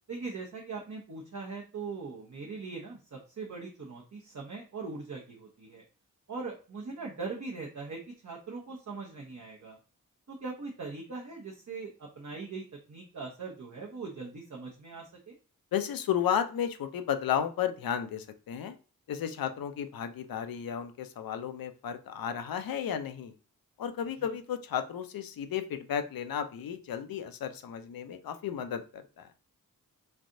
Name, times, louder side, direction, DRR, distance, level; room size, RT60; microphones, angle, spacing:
voice 1, 0.1-5.8 6.3-9.8 10.3-15.3 24.2-24.3, right 4 dB, 50° right, -2 dB, 0.9 m, -41 dB
voice 2, 15.7-18.7 19.1-23.3 23.8-29.3, left 9 dB, 75° left, 8 dB, 0.5 m, -33 dB
3.2 x 2.5 x 2.6 m, 0.35 s
cardioid pair, 40°, 35 cm